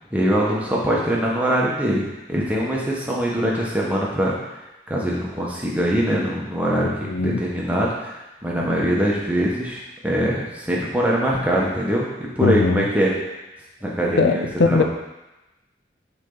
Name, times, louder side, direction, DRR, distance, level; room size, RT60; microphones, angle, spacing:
voice 1, 0.1-4.3 4.9-6.9 7.2-13.2 13.8-14.8, equal, 10° right, -4 dB, 1.2 m, -22 dB
voice 2, 6.8-7.4 12.4-12.9 14.2-14.8, left 4 dB, 75° left, 7 dB, 0.5 m, -20 dB
9.9 x 4.1 x 3.9 m, 0.99 s
head